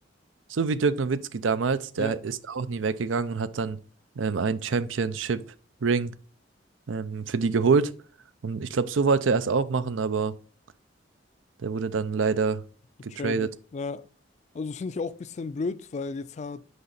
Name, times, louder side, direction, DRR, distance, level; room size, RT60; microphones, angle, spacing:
voice 1, 0.5-3.8 4.2-5.4 5.8-6.1 6.9-7.9 8.4-10.3 11.6-12.6 13.0-13.5, right 5 dB, 90° right, 0.5 m, -26 dB
voice 2, 13.1-14.1 14.5-16.7, left 4 dB, 35° left, 0.3 m, -33 dB
6.6 x 5.2 x 3.9 m
head